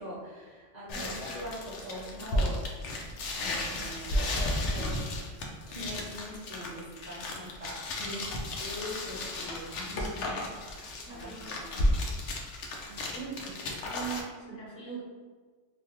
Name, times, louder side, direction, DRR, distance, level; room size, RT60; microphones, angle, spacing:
voice 1, 0.0-2.6 3.3-4.3 4.6-5.0 5.7-10.5 11.0-11.8, equal, 40° right, -8 dB, 0.8 m, -42 dB
sound 1, 0.9-14.2, left 1 dB, 70° left, 0.9 m, -33 dB
voice 2, 4.7-5.1 8.0-8.5 10.9-12.0 12.9-15.0, right 5 dB, 90° left, -4 dB, 1.3 m, -43 dB
3.3 x 2.3 x 2.8 m, 1.5 s
omnidirectional pair, 1.3 m